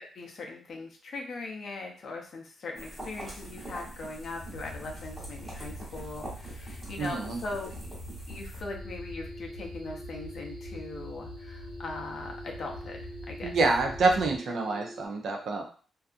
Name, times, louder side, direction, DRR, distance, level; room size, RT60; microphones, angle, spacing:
voice 1, 0.0-7.9 8.3-13.6, left 3 dB, 45° left, 1 dB, 0.5 m, -40 dB
sound 1, 2.7-8.6, right 1 dB, 5° right, 1.2 m, -44 dB
sound 2, 4.4-14.4, left 1 dB, 85° left, 0.7 m, -44 dB
voice 2, 7.0-7.4 13.4-15.6, right 3 dB, 55° right, 2 dB, 0.5 m, -27 dB
sound 3, 8.7-15.1, equal, 80° right, 1.0 m, -45 dB
2.6 x 2.3 x 2.5 m, 0.41 s
wide cardioid pair, 160°, 0 cm